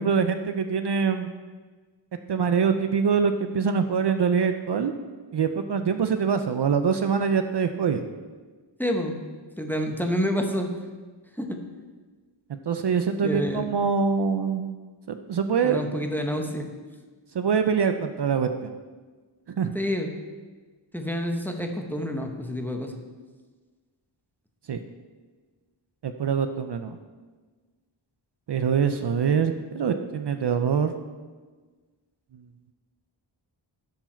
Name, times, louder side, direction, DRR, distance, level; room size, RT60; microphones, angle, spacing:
voice 1, 0.0-1.3 2.3-4.9 5.3-8.1 12.5-14.7 15.1-15.8 17.3-18.7 19.5-19.7 24.7-24.8 26.0-27.0 28.5-30.9, right 6 dB, 60° right, 8 dB, 0.5 m, -24 dB
voice 2, 8.8-9.2 9.6-10.7 11.4-11.6 13.2-13.7 15.6-16.7 19.7-20.1 20.9-23.0, equal, 5° left, 3 dB, 0.9 m, -28 dB
11.5 x 4.7 x 4.4 m, 1.4 s
wide cardioid pair, 60°, 48 cm